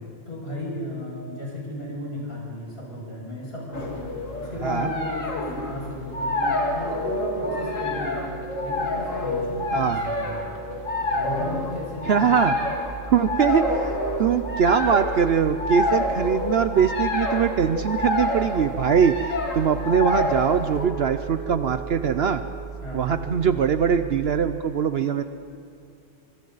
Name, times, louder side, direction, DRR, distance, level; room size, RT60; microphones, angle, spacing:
voice 1, 0.3-8.3 8.6-10.4 11.1-12.4 22.8-23.0, left 1 dB, 50° left, -4 dB, 7.1 m, -34 dB
sound 1, 3.7-20.9, left 2 dB, 80° left, 2.5 m, -28 dB
sound 2, 7.0-12.5 13.9-19.3 20.8-24.6, right 5 dB, 5° right, 1.8 m, -41 dB
voice 2, 12.1-12.6 13.1-13.9 14.2-19.1 19.5-22.4 22.9-25.2, right 7 dB, 60° right, 10 dB, 0.8 m, -22 dB
sound 3, 12.7-24.5, right 6 dB, 15° left, 5.7 m, -38 dB
26.0 x 25.0 x 4.0 m, 2.5 s
omnidirectional pair, 1.3 m